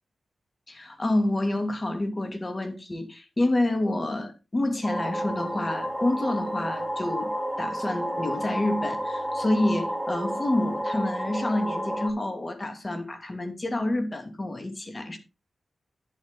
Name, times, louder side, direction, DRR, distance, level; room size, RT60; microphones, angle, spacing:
voice 1, 0.7-15.2, left 1 dB, 35° left, 2.6 m, -28 dB
sound 1, 4.8-12.1, equal, 5° right, 3.5 m, -31 dB
10.5 x 8.2 x 3.9 m
cardioid pair, 50°, 0 cm